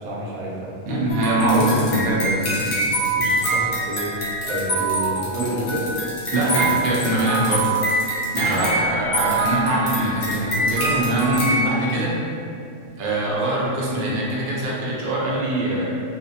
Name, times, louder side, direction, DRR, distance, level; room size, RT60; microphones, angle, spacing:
voice 1, 0.0-0.7 3.2-4.1 4.5-5.9 6.4-6.8 8.4-8.7, right 2 dB, 90° right, -4 dB, 1.0 m, -29 dB
voice 2, 0.8-2.8 3.2-3.3 6.3-7.7 8.3-12.1 13.0-15.9, right 1 dB, 60° right, -5 dB, 0.6 m, -22 dB
sound 1, 1.1-11.6, right 1 dB, 70° left, 0.9 m, -25 dB
sound 2, 1.5-1.9 2.5-3.5 4.4-8.5 9.3-9.5 9.9-10.0 10.3-10.4 10.7-11.1 11.4-11.5, left 3 dB, 45° left, 0.7 m, -35 dB
2.6 x 2.0 x 2.7 m, 2.5 s
omnidirectional pair, 1.4 m